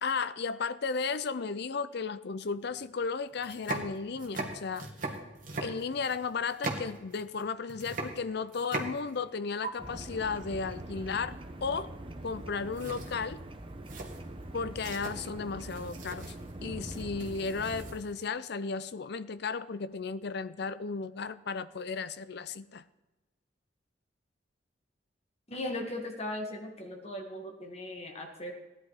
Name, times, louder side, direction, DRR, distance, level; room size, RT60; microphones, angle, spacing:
voice 1, 0.0-4.9 5.6-11.9 12.2-13.4 14.5-16.3 16.6-22.8, left 5 dB, 60° left, 14 dB, 0.6 m, -34 dB
sound 1, 2.7-2.8 3.3-7.4 7.7-9.3 9.6-9.7 12.2-12.5 12.7-18.2, right 3 dB, 45° right, 2.0 m, -40 dB
sound 2, 9.8-18.0, right 1 dB, 30° right, 1.0 m, -43 dB
voice 2, 25.5-28.5, left 1 dB, 35° left, 3 dB, 2.0 m, -38 dB
16.5 x 11.0 x 4.9 m, 1.1 s
head